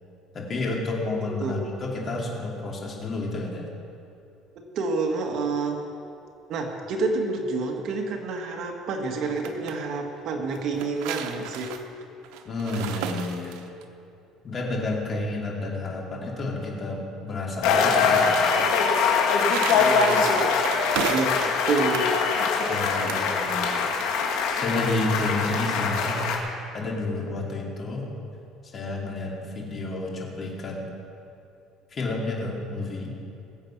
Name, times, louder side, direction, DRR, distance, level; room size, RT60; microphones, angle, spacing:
voice 1, 0.3-3.7 12.4-13.6 14.4-18.4 22.7-23.7 24.5-26.2 26.7-28.1 28.7-30.9 31.9-33.1, left 2 dB, 30° left, -2 dB, 2.9 m, -30 dB
voice 2, 4.5-5.8 6.5-11.7 19.6-20.3 20.9-21.3 21.7-22.1, right 3 dB, 55° right, 2 dB, 1.6 m, -28 dB
sound 1, 9.2-9.8 10.5-13.8 19.0-21.5 21.8-22.1 22.9-23.3, right 8 dB, 90° right, 0.9 m, -34 dB
sound 2, 17.6-26.4, left 5 dB, 80° left, 1.9 m, -23 dB
20.5 x 7.8 x 5.9 m, 2.6 s
cardioid pair, 140°, 0 cm